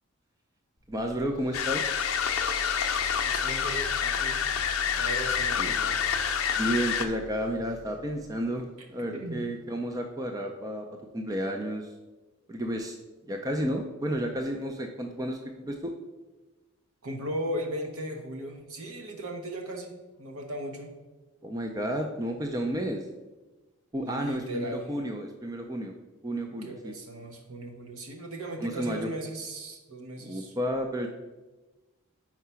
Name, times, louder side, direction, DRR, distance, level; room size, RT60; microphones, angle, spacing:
sound 1, 0.8-8.6, equal, 35° left, 0.7 m, -44 dB
voice 1, 0.9-1.9 5.6-5.8 6.6-10.9 11.1-11.9 12.5-13.0 13.3-15.9 21.4-23.1 23.9-25.9 26.2-26.9 28.6-29.1 30.2-31.1, equal, 15° right, 4 dB, 0.3 m, -31 dB
sound 2, 1.3-7.0, right 2 dB, 55° right, 1.5 m, -47 dB
sound 3, 1.5-7.1, left 8 dB, 75° left, 0.6 m, -28 dB
voice 2, 3.2-4.4 4.9-6.2 9.1-9.6 17.0-20.9 24.0-24.9 26.5-30.5, right 1 dB, 75° right, 4 dB, 1.0 m, -37 dB
4.8 x 4.6 x 5.5 m, 1.2 s
head